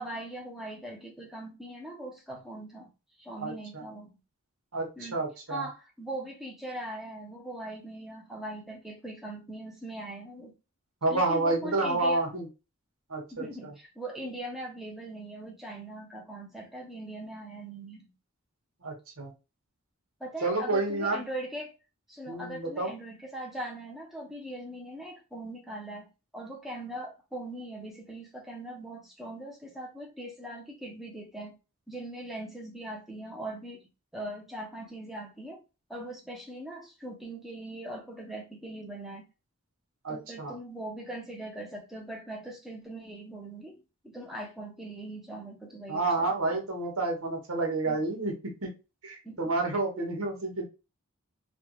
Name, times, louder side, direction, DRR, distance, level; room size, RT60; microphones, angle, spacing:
voice 1, 0.0-2.9 3.2-4.1 5.0-5.2 5.5-10.5 11.1-12.2 13.3-18.1 20.2-21.8 22.1-26.1 26.3-31.6 31.9-33.8 34.1-35.6 35.9-39.2 40.1-46.3 47.8-48.1 49.2-49.4 49.9-50.1, right 1 dB, ahead, 0.8 m, -40 dB
voice 2, 3.4-3.8 4.7-5.7 11.0-12.5 13.1-13.4 18.8-19.3 20.4-21.2 22.3-22.9 40.0-40.5 45.9-48.3 48.6-48.7 49.0-50.7, right 2 dB, 80° right, 1.3 m, -29 dB
3.3 x 2.4 x 3.0 m
head